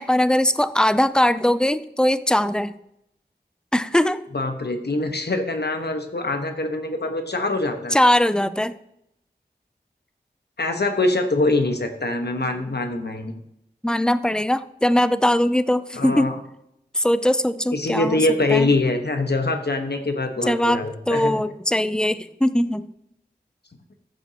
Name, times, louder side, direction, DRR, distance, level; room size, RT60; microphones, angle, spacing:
voice 1, 0.0-2.7 3.7-4.2 7.9-8.7 13.8-16.3 16.9-18.2 18.5-18.7 20.4-22.8, left 1 dB, 5° left, 13 dB, 0.5 m, -20 dB
voice 2, 4.3-8.0 10.6-13.3 15.9-16.3 17.7-21.4, left 2 dB, 75° left, 5 dB, 1.2 m, -24 dB
14.0 x 7.1 x 2.9 m, 0.79 s
wide cardioid pair, 55°, 17 cm